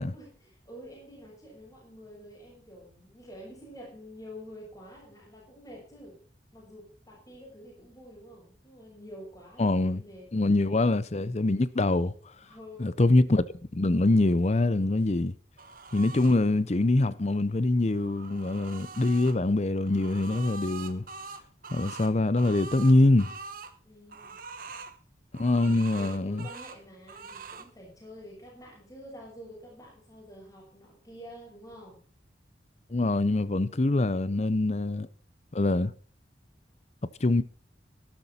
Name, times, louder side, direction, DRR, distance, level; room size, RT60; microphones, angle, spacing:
voice 1, 0.0-6.2 6.5-10.3 12.4-12.9 23.8-24.4 25.6-32.0, equal, 20° left, 6.4 m, -48 dB
voice 2, 9.6-10.0 10.3-12.1 12.8-13.4 13.7-15.3 15.9-21.0 21.7-23.3 25.3-26.5 32.9-35.1 35.5-35.9 37.2-37.4, left 2 dB, 35° left, 0.6 m, -24 dB
sound 1, 15.6-16.4 17.8-19.4 19.9-23.7 24.1-24.9 25.3-26.8 27.1-27.7, right 4 dB, 50° right, 1.1 m, -43 dB
12.5 x 12.5 x 4.3 m
head